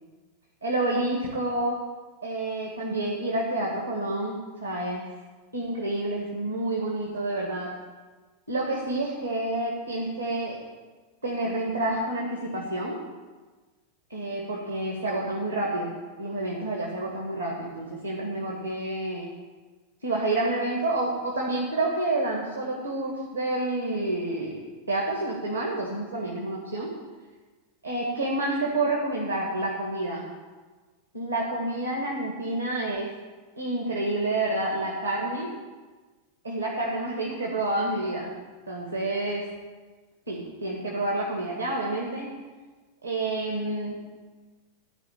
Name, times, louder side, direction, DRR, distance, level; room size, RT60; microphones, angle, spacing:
voice 1, 0.6-1.8 2.2-5.1 5.5-7.7 8.5-10.6 11.2-13.0 14.1-19.3 20.0-24.6 24.9-26.9 27.8-30.3 31.1-33.1 33.6-35.5 36.4-38.3 38.7-39.4 40.3-42.3 43.0-44.0, right 2 dB, 80° right, -2 dB, 2.0 m, -29 dB
13.0 x 5.0 x 8.9 m, 1.3 s
figure-of-eight pair, 90°, 0 cm